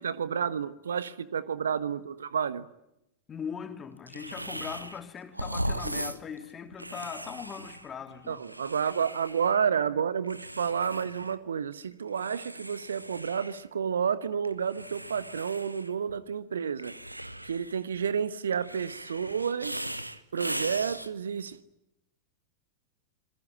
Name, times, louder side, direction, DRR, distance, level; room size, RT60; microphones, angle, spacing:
voice 1, 0.0-2.7 8.3-17.0 17.4-19.9 20.3-21.6, right 7 dB, 70° right, 1.2 m, -30 dB
voice 2, 3.3-8.4, left 7 dB, 20° left, 3.2 m, -40 dB
sound 1, 4.1-5.0 5.3-9.7 10.2-11.4 11.7-13.6 14.4-16.2 16.8-18.0 18.5-21.1, right 1 dB, 85° right, 1.3 m, -38 dB
27.5 x 22.5 x 8.8 m
figure-of-eight pair, 90°, 0 cm